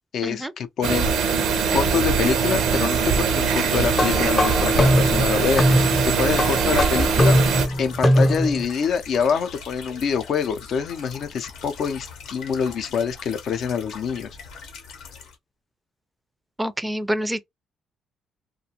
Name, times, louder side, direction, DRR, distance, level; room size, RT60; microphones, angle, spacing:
voice 1, 0.1-1.1 1.7-7.4 7.8-14.3, left 6 dB, 65° left, 0.4 m, -25 dB
sound 1, 0.8-7.7, right 6 dB, 85° right, 0.5 m, -22 dB
sound 2, 2.9-15.4, left 5 dB, 85° left, 0.8 m, -41 dB
sound 3, 3.9-8.6, equal, 30° left, 0.6 m, -21 dB
voice 2, 16.6-17.4, equal, 10° right, 0.3 m, -26 dB
2.4 x 2.1 x 2.7 m
cardioid pair, 90°, 0 cm